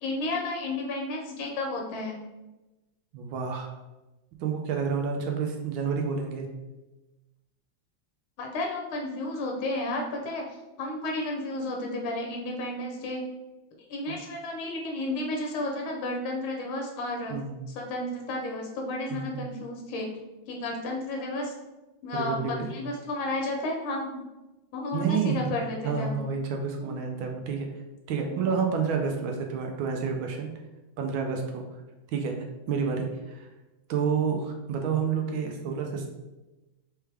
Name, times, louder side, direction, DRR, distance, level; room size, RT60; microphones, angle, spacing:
voice 1, 0.0-2.2 8.4-10.4 10.8-13.2 13.9-17.4 17.7-20.1 20.5-21.5 22.0-24.3 24.7-26.3 26.8-27.0, left 2 dB, 80° left, 1 dB, 1.6 m, -32 dB
voice 2, 3.1-3.7 4.4-6.5 14.1-14.2 17.3-17.6 19.1-19.4 22.1-22.7 24.9-25.4 25.8-27.7 28.1-30.5 31.0-31.6 32.1-32.3 32.7-33.5 33.9-36.1, right 6 dB, 80° right, 2 dB, 1.4 m, -29 dB
4.6 x 3.4 x 3.3 m, 1.1 s
omnidirectional pair, 2.2 m